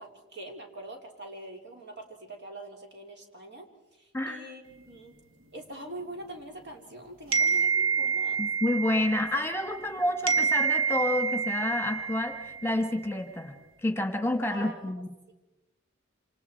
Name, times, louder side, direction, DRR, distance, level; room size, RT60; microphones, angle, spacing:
voice 1, 0.0-5.2 5.5-8.4 14.5-14.7 15.3-15.4, right 1 dB, 60° right, 2 dB, 3.5 m, -43 dB
sound 1, 7.3-9.9 10.3-12.8, right 5 dB, 75° right, 1.5 m, -28 dB
voice 2, 8.4-13.5 13.8-15.1, left 1 dB, 15° left, 6 dB, 1.6 m, -29 dB
27.5 x 27.0 x 4.6 m, 0.98 s
head